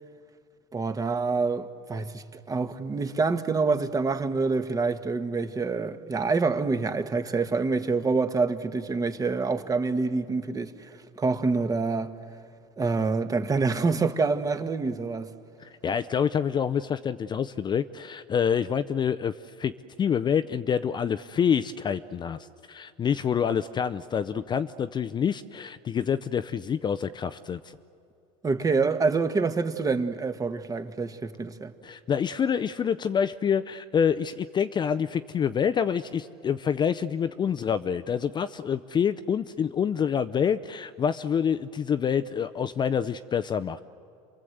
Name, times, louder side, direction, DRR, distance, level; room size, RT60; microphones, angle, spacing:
voice 1, 0.7-12.2 12.8-15.3 28.4-31.7, right 4 dB, 20° right, 1.4 m, -26 dB
voice 2, 15.6-19.7 20.0-22.4 22.7-27.6 31.8-43.8, left 7 dB, 25° left, 0.6 m, -27 dB
29.0 x 23.5 x 8.0 m
supercardioid pair, 110°, 16 cm